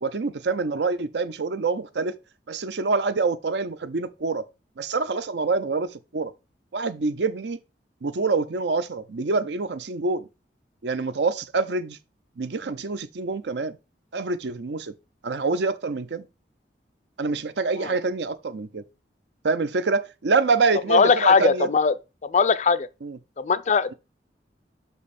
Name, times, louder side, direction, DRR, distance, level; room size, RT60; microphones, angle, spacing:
voice 1, 0.0-2.2 2.5-4.5 4.8-6.3 6.7-7.6 8.0-10.3 10.8-12.0 12.4-13.8 14.1-14.9 15.2-16.3 17.2-18.8 19.4-21.7 23.0-23.2, right 4 dB, 70° right, 0.6 m, -26 dB
voice 2, 20.9-21.9 22.2-22.9 23.4-23.9, left 5 dB, 40° left, 0.4 m, -19 dB
6.1 x 5.2 x 4.2 m
head